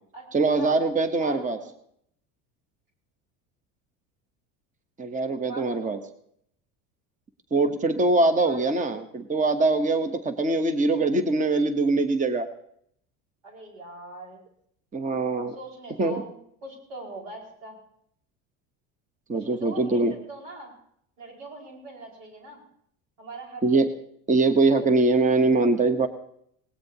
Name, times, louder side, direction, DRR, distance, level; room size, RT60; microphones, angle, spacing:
voice 1, 0.3-1.6 5.0-6.0 7.5-12.5 14.9-15.5 16.0-16.2 19.3-20.1 23.6-23.9 24.3-26.1, right 3 dB, 20° right, 9 dB, 1.1 m, -22 dB
voice 2, 1.2-1.6 5.5-6.0 8.2-8.6 13.4-14.4 15.5-16.3 16.6-17.8 19.3-20.7 21.2-22.6 23.2-23.8, right 2 dB, 85° right, 0 dB, 5.2 m, -41 dB
19.5 x 18.0 x 2.9 m, 0.69 s
supercardioid pair, 100°, 39 cm